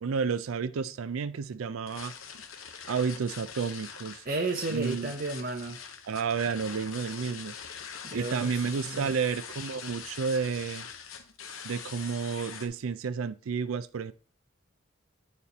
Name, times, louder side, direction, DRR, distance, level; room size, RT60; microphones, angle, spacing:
voice 1, 0.0-2.1 2.9-4.2 4.7-5.1 6.1-7.5 8.1-10.9 11.6-14.1, right 5 dB, 80° right, 0.4 m, -31 dB
sound 1, 1.9-12.7, left 7 dB, 80° left, 0.8 m, -43 dB
voice 2, 4.2-5.8 8.0-9.1, right 3 dB, 45° right, 0.7 m, -33 dB
8.6 x 4.4 x 4.0 m
head